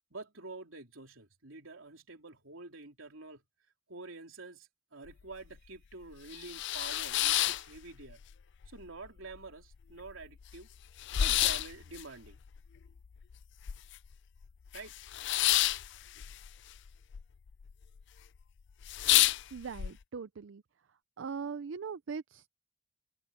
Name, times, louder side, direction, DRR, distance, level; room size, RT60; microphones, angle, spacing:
voice 1, 0.0-3.4 3.9-8.2 8.7-10.7 11.2-12.4 14.7-15.0, right 3 dB, 85° right, 3.4 m, -48 dB
sound 1, 5.1-5.2 5.6-5.7 6.1-8.3 8.6-9.4 9.7-9.8 10.0-14.1 14.4-17.2 17.5-18.0 18.4-18.5 18.8-19.9, left 14 dB, 60° left, 0.4 m, -30 dB
voice 2, 19.5-20.6 21.2-22.5, right 5 dB, 70° right, 0.5 m, -40 dB
head